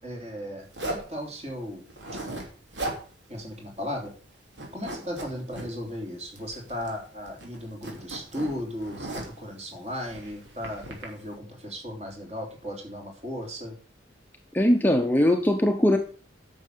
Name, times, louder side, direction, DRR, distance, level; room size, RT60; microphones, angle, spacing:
voice 1, 0.0-1.8 3.3-4.1 4.7-13.7, equal, 35° right, 0 dB, 3.4 m, -36 dB
Zipper (clothing), 0.7-1.1 1.9-2.5 2.7-3.0 3.4-3.5 3.8-4.2 4.5-5.7 6.4-7.0 7.2-9.4 10.0-11.0, right 1 dB, 85° right, 3.0 m, -37 dB
voice 2, 14.5-16.0, left 1 dB, 10° left, 4 dB, 0.8 m, -20 dB
9.7 x 6.4 x 6.7 m, 0.41 s
head